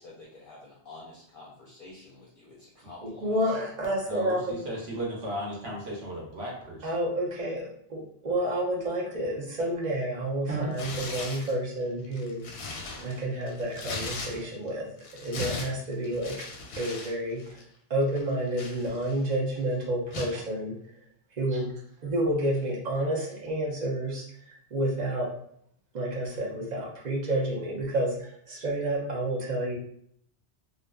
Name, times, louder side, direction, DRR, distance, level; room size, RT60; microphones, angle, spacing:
voice 1, 0.0-3.4, left 2 dB, 60° left, -4 dB, 0.7 m, -48 dB
voice 2, 3.0-4.6 6.8-12.4 13.0-14.9 15.2-16.4 16.8-17.4 17.9-20.7 21.4-21.7 22.0-24.2 24.7-25.3 25.9-29.8, right 1 dB, 45° right, -2 dB, 0.7 m, -29 dB
voice 3, 4.1-6.9, equal, 70° right, -3 dB, 1.1 m, -36 dB
Tearing, 10.7-11.5 12.0-14.7 15.0-17.1 17.4-17.6 18.1-19.3 20.1-20.4, left 3 dB, 90° left, 0.9 m, -38 dB
2.5 x 2.4 x 2.2 m, 0.68 s
omnidirectional pair, 1.1 m